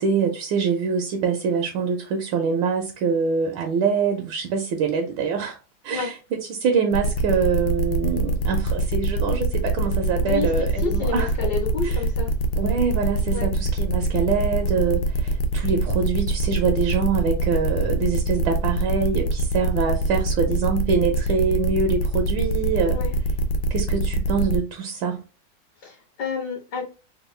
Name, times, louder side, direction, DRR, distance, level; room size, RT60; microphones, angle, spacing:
voice 1, 0.0-5.6 5.8-6.2 6.5-11.3 11.8-12.0 12.6-23.0 23.7-25.2, right 5 dB, 75° right, 1.2 m, -24 dB
sound 1, 6.9-24.6, right 1 dB, 90° left, 1.4 m, -24 dB
voice 2, 10.2-12.3 13.3-13.5 22.9-23.1 25.8-26.8, left 5 dB, 60° left, 1.2 m, -30 dB
3.6 x 2.2 x 3.1 m
omnidirectional pair, 2.3 m